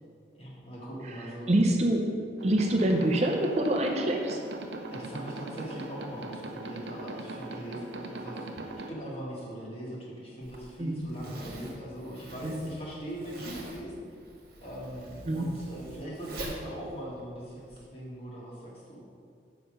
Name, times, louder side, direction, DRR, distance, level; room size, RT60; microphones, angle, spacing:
voice 1, 0.4-1.5 4.9-8.5 8.9-14.1 14.6-19.0, right 1 dB, 35° left, -5 dB, 1.8 m, -40 dB
voice 2, 1.5-2.2 2.4-4.4 10.8-11.1 12.4-12.7 15.3-15.6, right 1 dB, 35° right, 2 dB, 0.6 m, -26 dB
sound 1, 2.4-8.9, right 2 dB, 75° right, 0.7 m, -40 dB
Zipper (clothing), 10.4-17.8, right 1 dB, 50° right, 1.4 m, -44 dB
7.6 x 5.8 x 5.2 m, 2.3 s
head